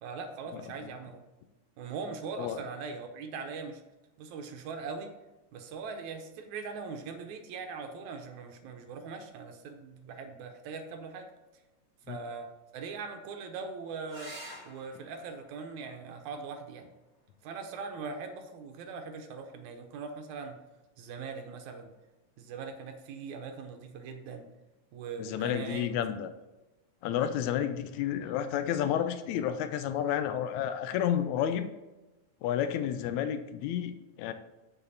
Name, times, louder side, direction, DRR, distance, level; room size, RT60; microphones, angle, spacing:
voice 1, 0.0-1.2 1.8-3.8 4.2-5.1 5.5-11.3 12.1-14.4 14.7-16.9 17.4-20.6 21.0-21.9 22.4-24.5 24.9-26.3, right 5 dB, 80° right, 5 dB, 2.2 m, -41 dB
sound 1, 14.1-19.1 21.0-21.6 25.1-25.2 25.5-25.6, right 1 dB, 10° right, 1.8 m, -52 dB
voice 2, 25.2-26.3 27.0-31.7 32.4-34.3, left 10 dB, 80° left, 10 dB, 2.0 m, -31 dB
7.6 x 6.8 x 4.1 m, 1.1 s
omnidirectional pair, 3.4 m